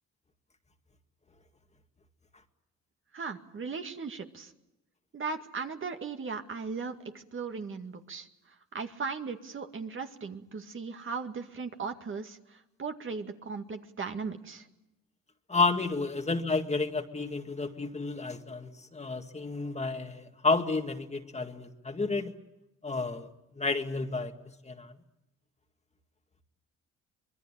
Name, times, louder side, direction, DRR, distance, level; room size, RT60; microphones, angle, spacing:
voice 1, 3.1-4.5 5.1-14.7, right 5 dB, 40° right, 5 dB, 2.1 m, -38 dB
voice 2, 15.5-22.3 22.8-23.3 23.6-24.3 24.6-24.9, left 3 dB, 20° left, 5 dB, 2.0 m, -31 dB
25.5 x 21.5 x 8.8 m, 0.90 s
cardioid pair, 90°, 30 cm